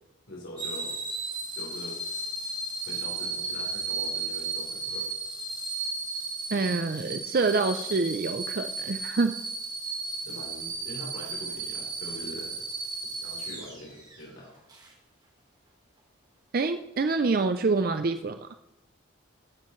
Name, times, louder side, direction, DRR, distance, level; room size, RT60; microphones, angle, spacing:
voice 1, 0.3-1.0 1.6-2.0 2.8-5.1 10.2-12.6 13.0-14.5, left 1 dB, 75° left, -3 dB, 3.7 m, -43 dB
sound 1, 0.6-14.2 14.7-14.9, right 3 dB, 20° right, 1.6 m, -34 dB
voice 2, 6.5-9.4 16.5-18.5, right 3 dB, 45° right, 9 dB, 0.4 m, -26 dB
15.0 x 10.0 x 3.1 m, 0.88 s
head